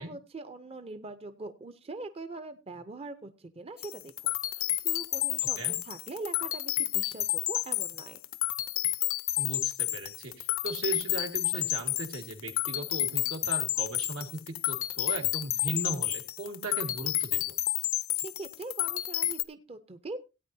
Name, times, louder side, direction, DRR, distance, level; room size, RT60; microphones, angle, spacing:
voice 1, 0.0-8.2 18.1-20.2, right 3 dB, 30° right, 10 dB, 0.6 m, -42 dB
sound 1, 3.8-19.4, left 15 dB, 80° left, 0.7 m, -31 dB
voice 2, 9.4-17.5, right 2 dB, 85° right, 3 dB, 2.0 m, -37 dB
17.0 x 9.1 x 2.7 m, 0.28 s
head